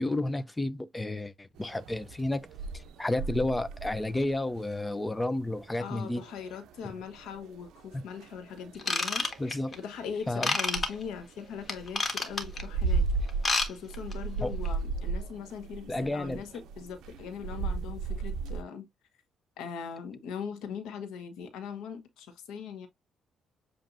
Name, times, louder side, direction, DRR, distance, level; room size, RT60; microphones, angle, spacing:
voice 1, 0.0-2.5 2.7-6.2 7.9-8.0 9.4-9.8 10.3-10.6 14.4-14.5 15.9-16.4, left 2 dB, 15° left, 0.5 m, -31 dB
sound 1, 1.6-18.6, right 4 dB, 80° right, 0.5 m, -36 dB
voice 2, 5.8-9.3 9.7-13.1 13.7-18.9 19.6-22.9, left 7 dB, 90° left, 1.1 m, -40 dB
Ratchet pawl / Tools, 8.8-9.7 10.4-10.9 11.7-12.6 13.3-13.7 13.9-14.1 14.6-14.7, left 3 dB, 35° left, 1.3 m, -28 dB
7.4 x 2.5 x 2.5 m
cardioid pair, 90°, 0 cm